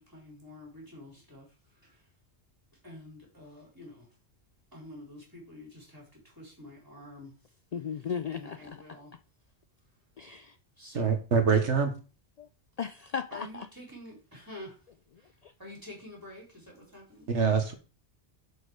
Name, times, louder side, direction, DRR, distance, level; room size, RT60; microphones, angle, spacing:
voice 1, 0.0-1.4 2.8-4.0 4.7-6.0 6.4-7.3 8.3-9.1 10.8-11.1 13.3-14.8 15.6-17.3, left 1 dB, 15° right, 4.3 m, -47 dB
voice 2, 7.7-8.8 10.2-10.6 12.4-12.5 12.8-13.7 15.4-15.5, left 7 dB, 70° left, 0.3 m, -36 dB
voice 3, 10.9-11.9 17.3-17.7, right 6 dB, 75° right, 1.5 m, -24 dB
7.3 x 6.5 x 4.8 m
omnidirectional pair, 1.2 m